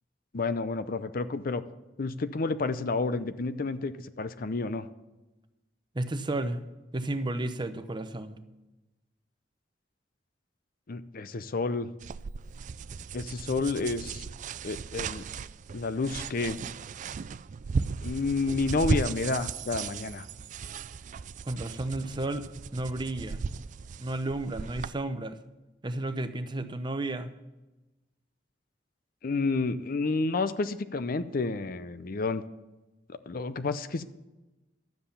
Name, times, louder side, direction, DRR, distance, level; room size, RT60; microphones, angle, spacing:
voice 1, 0.3-1.6 2.0-4.9 10.9-11.9 13.1-14.3 14.6-15.2 15.7-16.6 18.0-20.3 29.2-32.4 33.1-34.0, left 3 dB, 55° left, 12 dB, 0.6 m, -30 dB
voice 2, 5.9-6.6 6.9-8.4 21.4-23.4 24.0-25.4 25.8-27.3, right 2 dB, 25° right, 10 dB, 0.7 m, -32 dB
sound 1, 12.0-24.9, right 5 dB, 45° right, 0.3 m, -36 dB
12.0 x 7.8 x 6.9 m, 1.1 s
head